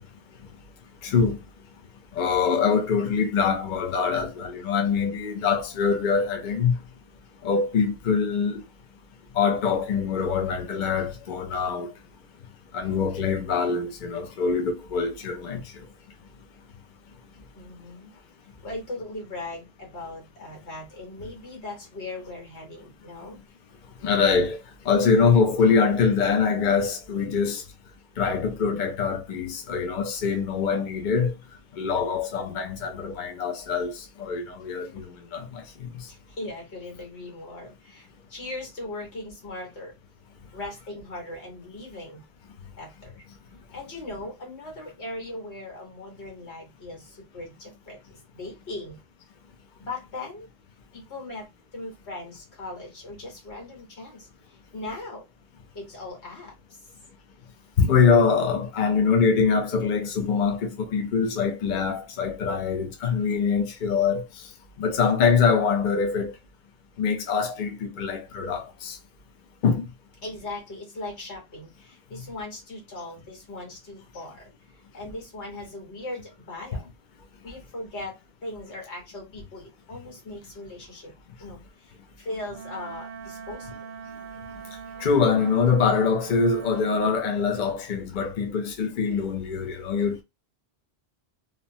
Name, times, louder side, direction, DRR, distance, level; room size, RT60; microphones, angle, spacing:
voice 1, 1.0-1.4 2.1-6.7 7.4-8.6 9.3-11.9 12.7-15.6 24.0-24.6 24.8-27.6 28.2-31.3 31.8-35.9 57.8-64.2 64.8-66.3 67.0-69.0 69.6-69.9 85.0-90.2, left 5 dB, 55° left, 0.7 m, -24 dB
voice 2, 17.5-18.1 18.6-23.4 34.8-35.0 36.1-39.9 40.5-42.2 42.8-43.3 43.7-49.0 49.8-50.5 50.9-55.3 55.8-56.8 70.2-76.9 77.4-81.1 81.4-83.9, left 2 dB, 90° left, 1.6 m, -39 dB
Wind instrument woodwind instrument, 82.5-87.3, right 6 dB, 65° right, 0.7 m, -42 dB
3.0 x 2.0 x 2.7 m
omnidirectional pair, 1.1 m